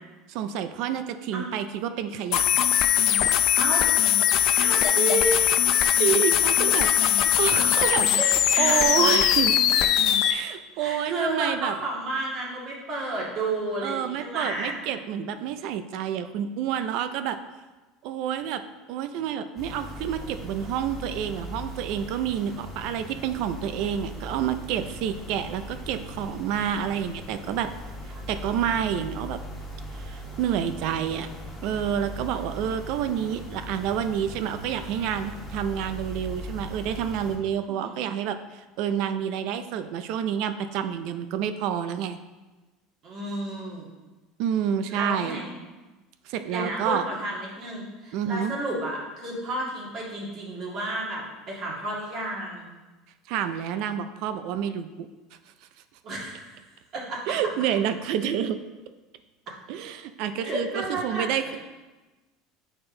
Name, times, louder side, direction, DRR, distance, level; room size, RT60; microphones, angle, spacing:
voice 1, 0.3-2.4 2.9-3.4 6.0-9.5 10.3-11.7 13.8-17.4 18.0-18.6 18.9-27.7 28.3-29.4 29.9-31.3 31.6-42.2 44.4-45.4 46.3-47.0 48.1-48.5 53.3-55.1 57.3-58.6 59.7-61.6, right 9 dB, 60° right, 10 dB, 0.4 m, -29 dB
sound 1, 2.3-10.3, left 10 dB, 55° left, 0.4 m, -21 dB
voice 2, 3.6-3.9 4.5-5.5 8.5-9.3 10.7-14.8 28.1-28.8 37.7-38.0 43.0-43.9 44.9-45.5 46.5-52.7 56.0-56.6 56.9-57.4 60.4-61.6, right 2 dB, 40° right, -4 dB, 1.8 m, -31 dB
sound 2, 19.6-37.4, equal, ahead, 1.4 m, -39 dB
6.8 x 4.4 x 3.8 m, 1.2 s
supercardioid pair, 140°, 0 cm